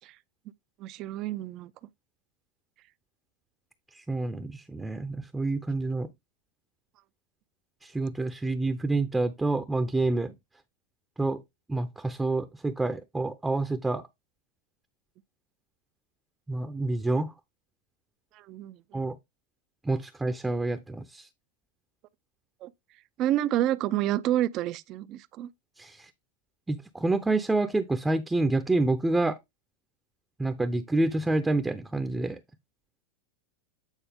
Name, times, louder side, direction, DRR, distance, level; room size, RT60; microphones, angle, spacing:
voice 1, 0.8-1.7 18.4-19.1 22.6-22.7 23.2-25.5, right 13 dB, 45° right, 0.5 m, -29 dB
voice 2, 3.9-6.1 7.8-10.3 11.2-11.4 11.7-14.0 16.5-17.3 18.9-19.2 19.8-21.3 25.8-26.1 26.7-29.4 30.4-32.4, right 2 dB, 10° right, 0.7 m, -28 dB
9.1 x 4.1 x 3.5 m
hypercardioid pair, 110°, 0 cm